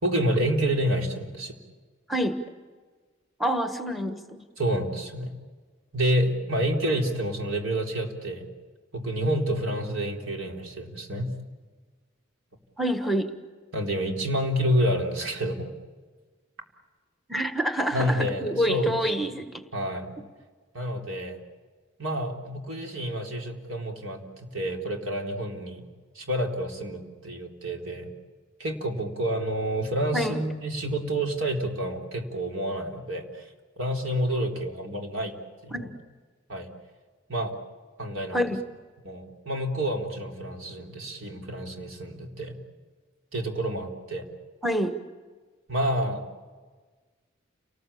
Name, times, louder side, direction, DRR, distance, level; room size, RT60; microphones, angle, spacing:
voice 1, 0.0-1.5 4.6-5.3 5.9-8.5 8.9-11.3 13.7-15.7 17.9-18.9 19.7-20.1 20.7-21.4 22.0-25.8 26.2-28.1 28.6-33.4 33.8-35.3 35.6-35.9 36.5-36.7 37.3-37.6 38.0-38.4 39.0-42.6 43.3-44.3 45.7-46.2, right 1 dB, 90° right, 2 dB, 3.7 m, -28 dB
voice 2, 2.1-2.4 3.4-4.4 12.8-13.3 17.3-19.6 20.2-20.3 30.1-30.4 35.7-35.9 38.3-38.6 44.6-45.0, equal, ahead, 7 dB, 1.4 m, -27 dB
29.5 x 19.5 x 8.6 m, 1.4 s
head